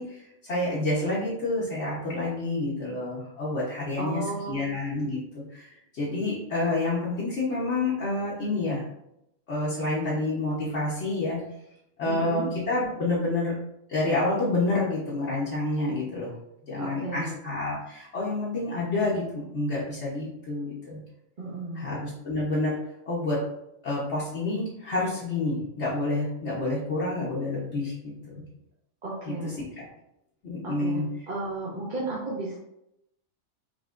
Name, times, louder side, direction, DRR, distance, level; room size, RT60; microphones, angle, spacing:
voice 1, 0.0-8.8 9.5-11.4 12.0-13.6 13.9-16.3 16.7-21.0 21.7-22.8 23.1-23.5 23.8-28.4 29.2-29.9 30.4-31.1, left 2 dB, 60° left, -8 dB, 1.2 m, -28 dB
voice 2, 4.0-4.6 12.1-12.5 16.8-17.3 21.4-21.8 29.0-29.6 30.6-31.0 31.3-32.6, right 2 dB, 40° right, -7 dB, 1.1 m, -33 dB
5.1 x 3.0 x 2.4 m, 0.82 s
omnidirectional pair, 1.4 m